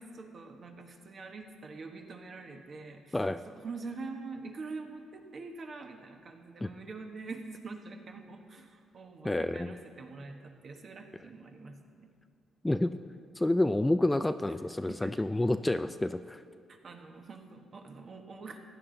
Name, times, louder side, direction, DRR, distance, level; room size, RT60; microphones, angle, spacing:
voice 1, 0.0-3.2 3.5-12.1 14.5-14.6 14.9-15.2 16.7-18.6, right 3 dB, 50° right, 4 dB, 1.3 m, -45 dB
voice 2, 9.2-9.7 12.6-12.9 13.4-16.4, left 1 dB, 10° left, 10 dB, 0.3 m, -29 dB
15.5 x 9.9 x 3.9 m, 2.3 s
cardioid pair, 90°, 0 cm